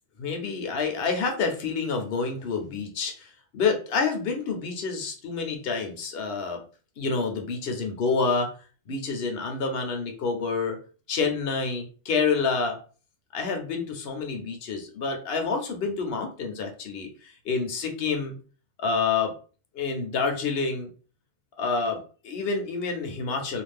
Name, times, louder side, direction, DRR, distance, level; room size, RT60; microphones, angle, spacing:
voice 1, 0.2-6.6 7.0-8.5 8.9-10.8 11.1-12.8 13.3-18.3 18.8-19.3 19.7-20.9 21.6-23.6, left 4 dB, 60° left, 4 dB, 0.8 m, -28 dB
2.5 x 2.4 x 3.3 m, 0.38 s
omnidirectional pair, 1.3 m